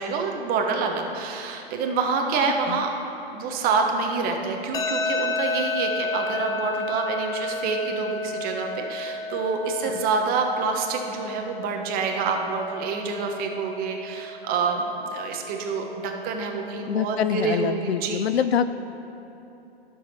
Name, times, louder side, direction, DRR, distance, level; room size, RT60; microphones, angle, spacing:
voice 1, 0.0-2.9 3.3-18.3, right 4 dB, 30° right, 3 dB, 1.2 m, -27 dB
sound 1, 4.7-17.7, left 2 dB, 10° left, 0.6 m, -32 dB
voice 2, 16.9-18.7, left 9 dB, 80° left, 12 dB, 0.5 m, -25 dB
12.0 x 6.6 x 5.7 m, 2.9 s
hypercardioid pair, 125°, 31 cm